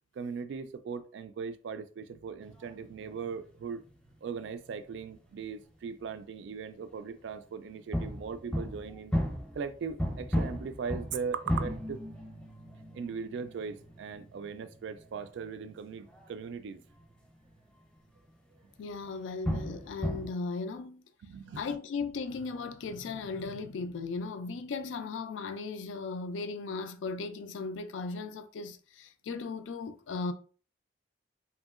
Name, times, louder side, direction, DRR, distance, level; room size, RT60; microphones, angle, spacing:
voice 1, 0.2-3.8 4.2-9.1 9.5-12.0 12.9-16.8 21.2-21.6, right 5 dB, 75° right, 0.3 m, -39 dB
sound 1, 2.4-5.6 5.9-6.4 6.8-7.3 7.9-17.6 17.9-18.1 18.5-18.7 19.0-20.3, equal, 5° left, 0.6 m, -37 dB
voice 2, 18.8-21.0 21.5-30.3, left 4 dB, 90° left, 0.4 m, -37 dB
2.9 x 2.7 x 2.4 m
head